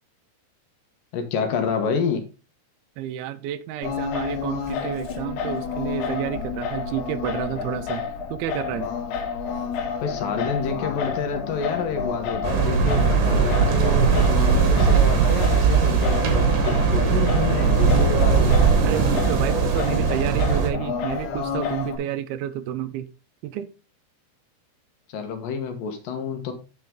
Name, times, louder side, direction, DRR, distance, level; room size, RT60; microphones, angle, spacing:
voice 1, 1.1-2.2 10.0-18.6 25.1-26.5, left 5 dB, 70° left, 6 dB, 2.6 m, -28 dB
voice 2, 3.0-8.0 8.3-8.9 18.8-23.1 23.4-23.7, right 11 dB, 80° right, 12 dB, 2.4 m, -30 dB
Singing, 3.8-22.0, left 6 dB, 85° left, 3.1 m, -30 dB
sound 1, 12.4-20.7, right 5 dB, 55° right, 2.0 m, -19 dB
9.2 x 5.5 x 3.6 m, 0.32 s
omnidirectional pair, 4.5 m